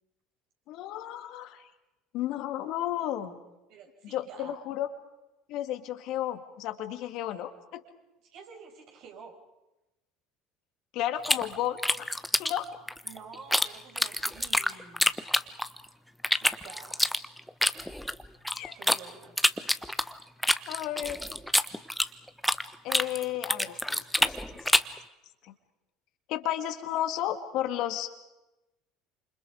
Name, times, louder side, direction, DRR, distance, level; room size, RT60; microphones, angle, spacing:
voice 1, 0.7-1.7 2.1-3.4 4.1-4.9 5.5-7.8 10.9-12.1 12.4-12.6 18.5-18.7 20.7-21.2 22.8-24.4 25.4-25.5 26.3-28.1, left 12 dB, 60° left, 7 dB, 2.1 m, -33 dB
voice 2, 3.7-4.6 8.2-9.3 13.0-15.1 16.3-17.1 18.7-19.4, right 5 dB, 60° right, 1 dB, 6.7 m, -49 dB
sound 1, 11.2-13.7 14.0-15.8 16.2-19.0 19.4-22.6 22.9-25.0, left 1 dB, 5° left, 1.2 m, -26 dB
29.5 x 27.5 x 5.0 m, 0.99 s
hypercardioid pair, 65°, 0 cm